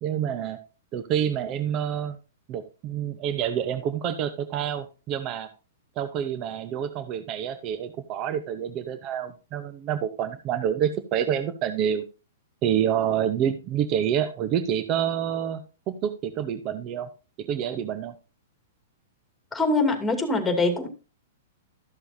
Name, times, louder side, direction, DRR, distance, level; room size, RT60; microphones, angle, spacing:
voice 1, 0.0-0.6 0.9-2.2 2.5-5.5 6.0-12.0 12.6-15.6 15.9-17.1 17.4-18.1, right 9 dB, 35° right, 11 dB, 0.9 m, -27 dB
voice 2, 19.5-20.9, left 2 dB, 5° left, 5 dB, 2.4 m, -23 dB
13.0 x 6.8 x 2.7 m, 0.30 s
hypercardioid pair, 130°, 0 cm